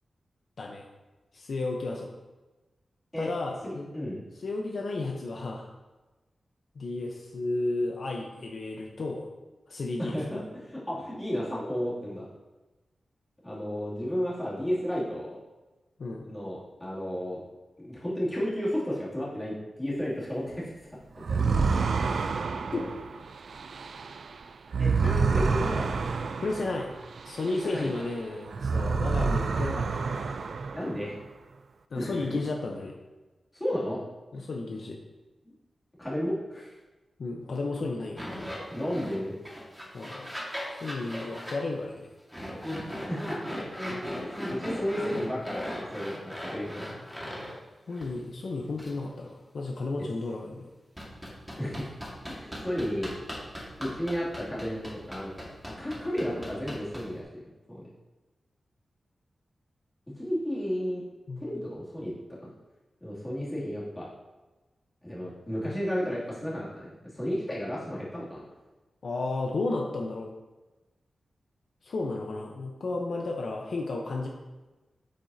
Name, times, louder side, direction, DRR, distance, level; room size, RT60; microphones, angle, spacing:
voice 1, 1.3-2.1 3.2-3.9 4.4-5.7 6.8-9.3 9.7-10.2 16.0-16.3 22.7-22.9 26.4-26.9 27.2-30.4 31.9-33.0 34.3-35.0 37.2-38.5 39.9-40.3 40.7-42.1 47.9-50.7 61.3-61.5 69.0-70.3 71.8-74.3, left 3 dB, 60° left, 0 dB, 0.8 m, -33 dB
voice 2, 3.6-4.2 10.0-12.3 13.4-15.4 16.1-17.4 17.8-20.7 21.3-21.4 22.6-22.9 24.8-26.1 27.4-28.0 30.7-31.2 31.9-32.4 33.5-34.0 34.3-34.4 35.4-35.5 36.0-36.7 38.7-39.4 43.0-43.6 44.2-46.8 50.0-50.1 51.6-51.9 52.3-53.1 53.8-55.5 55.8-57.9 60.2-61.0 61.4-62.1 63.0-64.1 65.0-66.9 67.1-68.4, equal, 10° left, -8 dB, 2.6 m, -33 dB
sound 1, 21.2-28.1 28.5-31.2, right 4 dB, 65° right, 0.4 m, -29 dB
sound 2, 38.2-39.2 39.4-41.6 42.3-47.5 47.9-48.1 48.8-48.9 51.0-57.2, equal, 5° right, 1.7 m, -38 dB
8.6 x 7.6 x 2.8 m, 1.1 s
wide cardioid pair, 160°, 0 cm